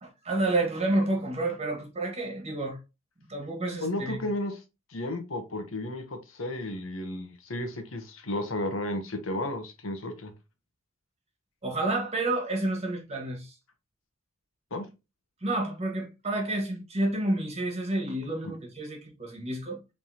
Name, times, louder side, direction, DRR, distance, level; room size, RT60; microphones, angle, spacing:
voice 1, 0.0-2.8 3.3-4.2 11.6-13.5 15.4-19.8, right 2 dB, 30° right, 1.6 m, -29 dB
voice 2, 3.8-4.6 4.9-10.3 14.7-14.9, left 1 dB, 70° left, 1.0 m, -33 dB
5.3 x 3.4 x 2.8 m
head